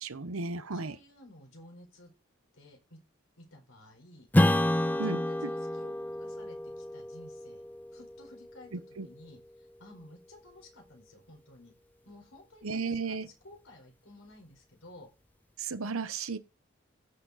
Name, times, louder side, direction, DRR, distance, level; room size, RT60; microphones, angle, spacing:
voice 1, 0.0-1.0 5.0-5.5 8.7-9.1 12.6-13.3 15.6-16.4, right 4 dB, 85° right, 0.9 m, -34 dB
voice 2, 0.7-2.1 2.5-3.0 3.4-4.3 4.7-7.6 7.9-11.7 12.0-15.1, left 2 dB, 70° left, 4.4 m, -54 dB
Strum, 4.3-9.3, left 1 dB, 10° left, 0.4 m, -30 dB
15.5 x 6.2 x 4.1 m
head